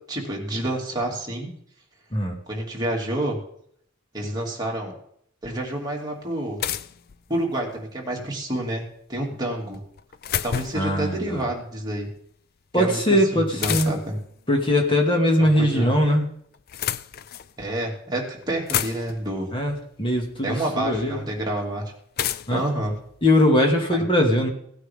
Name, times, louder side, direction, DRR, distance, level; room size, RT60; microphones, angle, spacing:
voice 1, 0.1-1.5 2.5-3.4 4.1-4.9 5.4-6.6 7.3-9.8 10.4-12.1 12.8-14.2 15.4-15.9 17.6-19.5 20.4-21.8 22.5-22.9 23.9-24.0, right 1 dB, 20° right, -2 dB, 2.7 m, -28 dB
sound 1, 5.6-5.7 6.6-7.7 9.7-11.0 13.6-14.2 15.4-16.0 16.5-17.5 18.2-18.3 18.4-19.3 20.5-20.6 22.2-23.7, left 10 dB, 50° left, 0.4 m, -30 dB
voice 2, 10.7-11.4 12.7-13.9 14.5-16.3 19.5-21.2 22.5-22.6 23.2-24.5, left 1 dB, 25° left, 1 dB, 2.3 m, -21 dB
17.0 x 9.1 x 3.7 m, 0.68 s
head